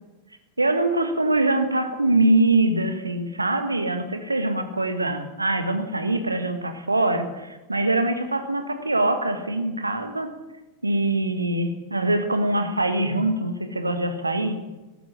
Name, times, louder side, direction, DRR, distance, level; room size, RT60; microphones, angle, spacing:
voice 1, 0.6-10.3 10.8-14.6, right 2 dB, 80° right, 8 dB, 1.5 m, -23 dB
14.0 x 11.5 x 6.3 m, 1.1 s
figure-of-eight pair, 90°, 0 cm